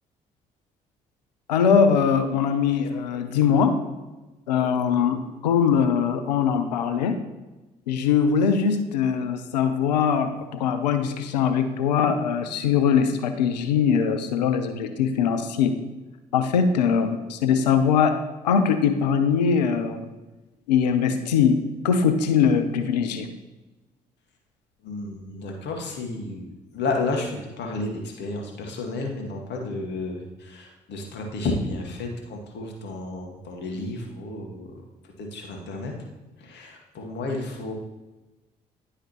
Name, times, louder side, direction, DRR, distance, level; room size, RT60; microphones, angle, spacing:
voice 1, 1.5-3.8 4.5-7.2 7.9-15.7 16.3-18.1 18.4-20.1 20.7-21.6 21.8-23.3, left 7 dB, 80° left, 9 dB, 0.6 m, -21 dB
voice 2, 24.8-34.8 35.2-35.9 36.4-37.7, left 2 dB, 55° left, 1 dB, 1.5 m, -32 dB
10.5 x 4.8 x 3.0 m, 1.1 s
figure-of-eight pair, 45°, 21 cm